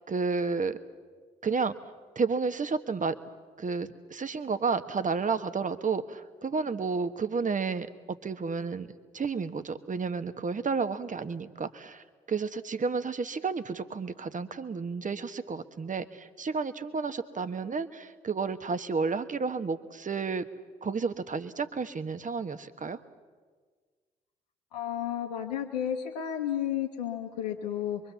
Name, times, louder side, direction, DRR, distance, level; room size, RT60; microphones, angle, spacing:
voice 1, 0.1-0.8 1.4-1.7 2.1-3.1 3.6-8.9 9.1-20.5 20.8-23.0, right 4 dB, 40° right, 11 dB, 1.5 m, -31 dB
voice 2, 24.7-28.0, left 10 dB, 90° left, 0 dB, 1.2 m, -32 dB
25.0 x 23.5 x 7.2 m, 1.5 s
hypercardioid pair, 45°, 20 cm